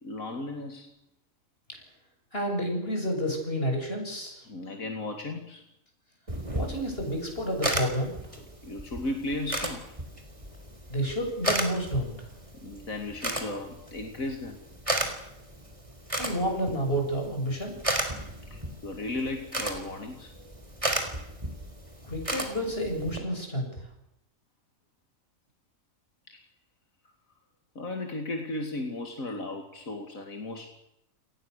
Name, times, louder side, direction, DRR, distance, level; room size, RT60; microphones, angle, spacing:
voice 1, 0.0-0.9 4.5-5.6 8.6-9.9 12.6-14.6 18.5-20.3 26.3-26.4 27.7-30.7, left 2 dB, 85° left, 4 dB, 2.9 m, -35 dB
voice 2, 2.3-4.4 6.6-8.1 10.9-12.3 16.2-17.8 22.0-23.9, equal, 45° left, 3 dB, 7.5 m, -30 dB
sound 1, 6.3-23.2, right 1 dB, 25° right, 4.0 m, -35 dB
27.5 x 19.5 x 6.8 m, 0.85 s
omnidirectional pair, 1.4 m